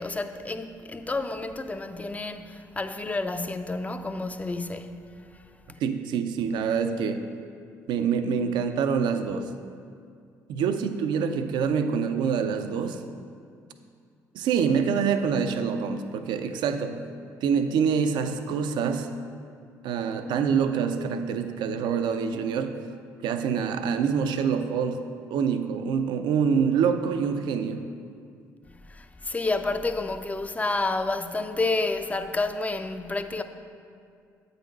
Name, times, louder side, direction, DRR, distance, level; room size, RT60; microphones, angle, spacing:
voice 1, 0.0-5.0 5.3-5.4 5.7-5.8 28.6-33.4, left 3 dB, 15° left, 0.5 m, -30 dB
voice 2, 5.8-7.2 7.9-9.5 10.5-13.0 14.3-17.0 17.4-19.1 19.8-22.8 23.2-25.0 25.3-27.9, right 6 dB, 65° right, 0.4 m, -26 dB
8.2 x 4.0 x 5.3 m
hypercardioid pair, 50°, 8 cm